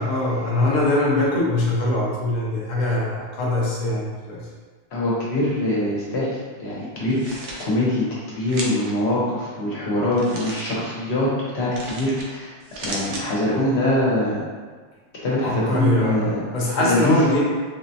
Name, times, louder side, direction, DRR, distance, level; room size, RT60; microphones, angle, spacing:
voice 1, 0.0-4.5 15.4-17.4, left 2 dB, 50° left, -5 dB, 0.6 m, -22 dB
voice 2, 4.9-6.3 6.6-11.3 11.5-12.5 12.8-14.4 15.2-16.4 16.8-17.2, left 1 dB, 65° left, -6 dB, 1.1 m, -23 dB
sound 1, 7.0-7.7 8.5-8.9 10.1-10.7 11.7-12.3 12.6-13.2, right 2 dB, 85° right, 0.9 m, -34 dB
3.7 x 2.1 x 2.6 m, 1.5 s
omnidirectional pair, 1.2 m